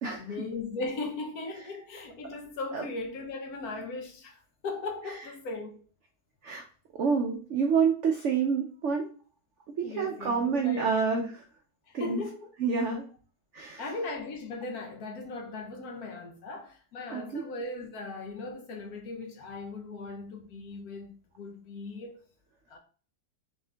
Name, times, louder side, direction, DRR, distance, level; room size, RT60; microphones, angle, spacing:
voice 1, 0.0-5.8 9.8-11.1 12.0-12.5 13.8-22.2 22.7-22.8, left 3 dB, 65° left, 1.2 m, -38 dB
voice 2, 7.0-9.0 9.8-11.2 11.9-12.2 12.6-13.0 13.5-13.8 17.1-17.4, right 5 dB, 75° right, 0.6 m, -27 dB
3.6 x 3.5 x 3.3 m
omnidirectional pair, 1.9 m